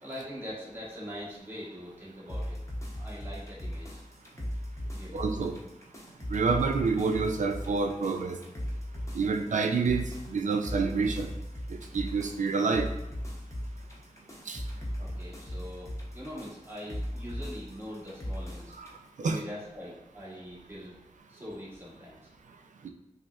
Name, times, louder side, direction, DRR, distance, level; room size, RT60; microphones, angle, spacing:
voice 1, 0.0-2.6 2.9-4.0 4.9-5.2 15.0-18.7 19.2-21.0 21.3-22.3, equal, 20° right, -7 dB, 1.3 m, -42 dB
sound 1, 2.3-19.0, equal, 25° left, 0.7 m, -38 dB
voice 2, 5.1-5.5 6.3-8.4 9.1-11.3 11.9-12.9 14.5-14.6 18.8-18.9 19.2-19.4, right 4 dB, 75° right, 5 dB, 0.4 m, -28 dB
5.1 x 2.1 x 2.3 m, 0.93 s
wide cardioid pair, 80°, 13 cm